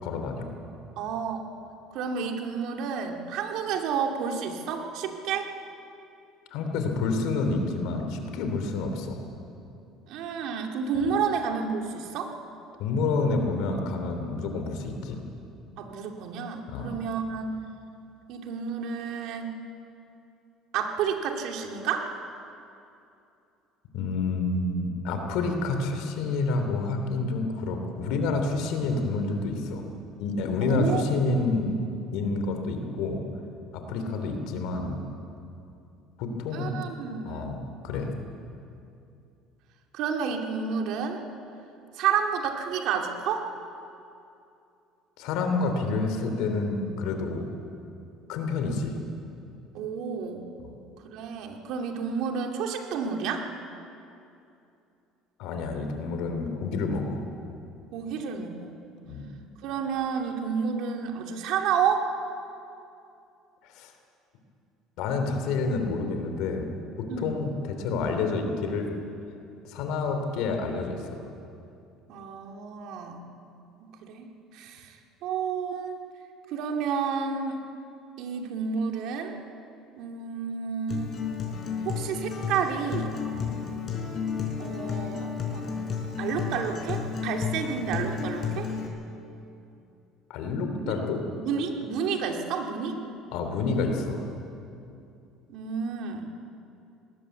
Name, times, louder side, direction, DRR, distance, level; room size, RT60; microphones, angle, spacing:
voice 1, 0.0-0.5 6.5-9.2 12.8-15.2 16.7-16.9 23.9-29.8 30.2-31.7 32.1-33.2 33.7-35.0 36.2-36.7 37.2-38.1 45.2-47.4 48.3-49.0 50.6-50.7 55.4-57.2 59.0-59.3 63.7-63.9 65.0-66.7 67.2-68.9 69.7-71.1 83.3-83.6 90.3-91.2 93.3-94.3, left 3 dB, 75° left, 5 dB, 3.3 m, -28 dB
voice 2, 1.0-1.4 1.9-5.5 10.1-12.3 15.8-17.6 18.3-19.6 20.7-22.1 30.6-31.1 34.0-34.2 36.5-37.5 39.9-41.2 41.9-43.5 49.7-50.5 51.1-53.5 57.9-58.8 59.6-62.1 67.1-67.4 72.1-73.2 73.8-74.3 74.5-75.0 75.2-76.0 76.5-77.6 78.2-79.4 80.0-81.2 81.8-83.1 84.6-85.6 86.2-88.7 90.7-90.9 91.3-93.0 95.5-96.3, right 6 dB, 70° right, 3 dB, 2.5 m, -30 dB
Acoustic guitar, 80.9-88.9, left 6 dB, 45° left, 5.1 m, -32 dB
20.0 x 18.0 x 8.3 m, 2.7 s
supercardioid pair, 100°, 0 cm